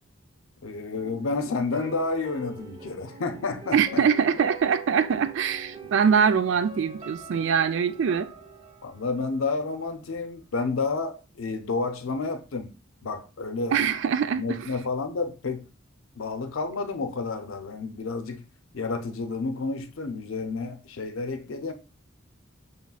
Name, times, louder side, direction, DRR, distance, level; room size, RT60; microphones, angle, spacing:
voice 1, 0.6-4.0 5.8-5.9 8.8-12.7 13.0-13.9 14.3-15.7 16.1-18.4 18.7-21.7, left 3 dB, 80° left, 0.6 m, -30 dB
sound 1, 0.9-9.9 10.2-10.3, right 4 dB, 25° right, 0.6 m, -44 dB
voice 2, 3.7-8.3 13.7-14.6, right 7 dB, 65° right, 0.3 m, -23 dB
6.0 x 3.1 x 2.3 m
head